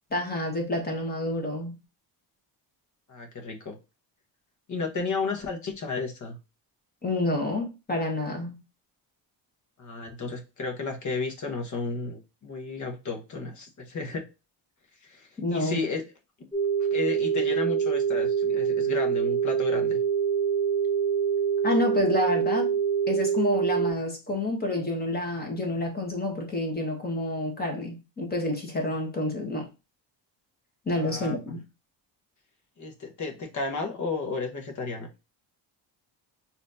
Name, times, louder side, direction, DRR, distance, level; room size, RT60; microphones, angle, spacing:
voice 1, 0.1-1.8 7.0-8.6 15.4-15.8 21.6-22.7 23.1-29.7 30.8-31.6, left 1 dB, 20° left, 1.3 m, -28 dB
voice 2, 3.1-3.8 4.7-6.4 9.8-14.3 15.0-16.0 16.9-20.0 30.9-31.4 32.8-35.1, left 4 dB, 40° left, 1.2 m, -33 dB
sound 1, 16.5-23.9, right 7 dB, ahead, 0.9 m, -25 dB
4.3 x 2.8 x 2.6 m
cardioid pair, 125°, 45 cm